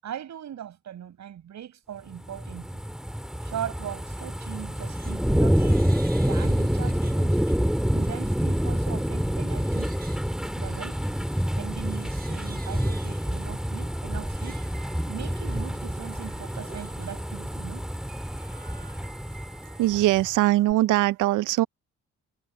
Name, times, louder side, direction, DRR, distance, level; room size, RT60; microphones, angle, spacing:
voice 1, 0.0-2.8 3.4-5.8 6.3-7.5 7.9-10.0 10.6-11.0 11.5-14.6 15.1-17.9, right 10 dB, 65° right, 7.0 m, -39 dB
sound 1, 2.1-20.3 20.7-20.8, equal, ahead, 2.0 m, -27 dB
Crying sobbing, 4.6-5.2 5.5-7.6 8.0-8.3 8.8-20.8, right 4 dB, 30° right, 5.4 m, -52 dB
voice 2, 19.8-21.7, right 16 dB, 85° right, 0.6 m, -21 dB
cardioid pair, 90°, 30 cm